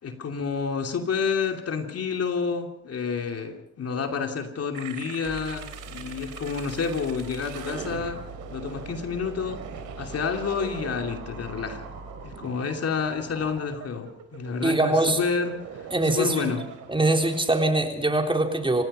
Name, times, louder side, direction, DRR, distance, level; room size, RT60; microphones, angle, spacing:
voice 1, 0.0-8.2 8.5-9.6 10.0-11.9 12.2-16.6, left 5 dB, 55° left, 5 dB, 2.8 m, -29 dB
sound 1, 4.7-17.4, right 7 dB, 85° right, 3.2 m, -41 dB
Mechanical fan, 5.2-12.2, equal, 55° right, 6.8 m, -44 dB
voice 2, 14.6-15.2 15.9-16.5 16.9-18.8, right 2 dB, 15° right, 3 dB, 3.9 m, -23 dB
27.5 x 18.0 x 5.5 m, 0.74 s
cardioid pair, 90°, 30 cm